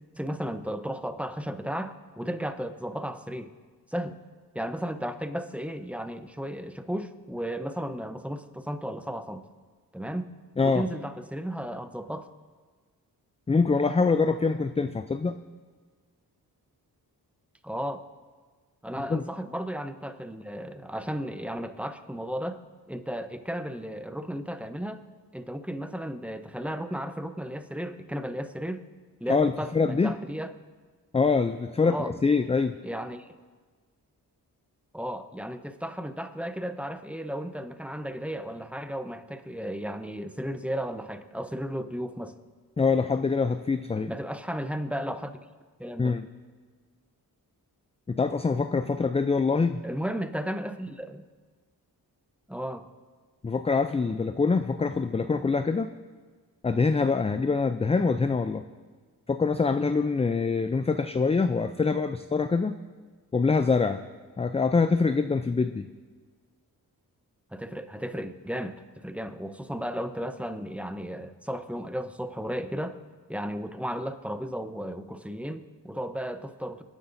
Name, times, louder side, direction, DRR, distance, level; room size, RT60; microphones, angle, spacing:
voice 1, 0.1-3.5 3.9-4.2 4.5-9.4 9.9-10.3 10.6-12.3 17.6-18.1 18.8-22.6 22.9-25.0 25.3-28.9 29.2-30.5 31.8-32.1 32.8-33.3 34.9-42.3 44.1-45.4 45.8-46.2 49.8-51.2 52.5-52.9 67.5-73.0 73.3-76.8, equal, 5° right, 9 dB, 0.8 m, -34 dB
voice 2, 13.5-15.4 19.1-19.2 29.3-30.1 31.1-32.8 42.8-44.1 46.0-46.2 48.1-49.8 53.4-55.9 56.6-58.6 59.3-62.8 63.3-64.0 64.4-65.8, left 4 dB, 15° left, 9 dB, 0.4 m, -24 dB
26.0 x 9.8 x 2.6 m, 1.5 s
cardioid pair, 60°, 40 cm